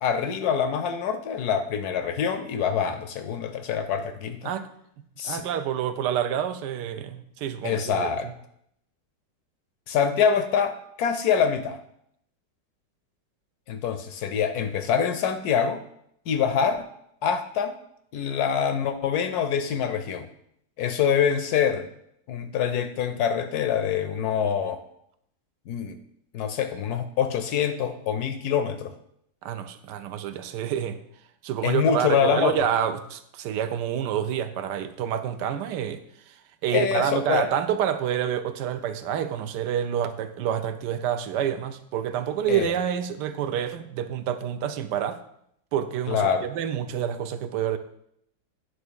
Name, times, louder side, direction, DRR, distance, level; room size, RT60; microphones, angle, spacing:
voice 1, 0.0-4.5 5.2-5.4 7.6-8.3 9.9-11.8 13.7-15.8 16.3-16.9 17.2-17.8 18.1-20.3 20.8-21.9 22.3-24.8 25.7-26.0 26.3-28.9 31.6-32.7 36.7-37.5 42.5-42.7 46.1-46.5, left 7 dB, 70° left, 9 dB, 1.0 m, -25 dB
voice 2, 5.2-8.3 29.4-31.0 31.4-36.0 36.3-36.4 36.6-45.2 45.7-47.8, right 9 dB, 75° right, 11 dB, 1.2 m, -28 dB
9.4 x 3.2 x 6.2 m, 0.72 s
omnidirectional pair, 1.9 m